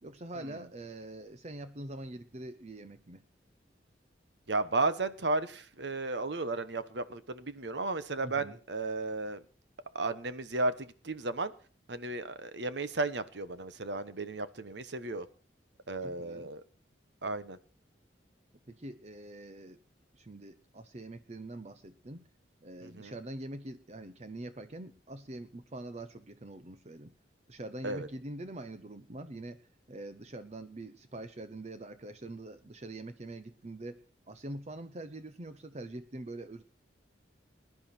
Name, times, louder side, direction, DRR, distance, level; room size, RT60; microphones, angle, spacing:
voice 1, 0.0-3.2 8.2-8.6 16.0-16.5 18.7-19.8 20.1-22.3 22.6-27.1 27.5-34.0 34.3-36.6, right 1 dB, 35° right, 0.7 m, -44 dB
voice 2, 4.5-9.4 9.9-11.5 11.9-15.3 15.9-16.6 17.2-17.6 22.8-23.1 27.8-28.1, right 3 dB, 70° right, 1.1 m, -34 dB
20.5 x 10.5 x 4.4 m
head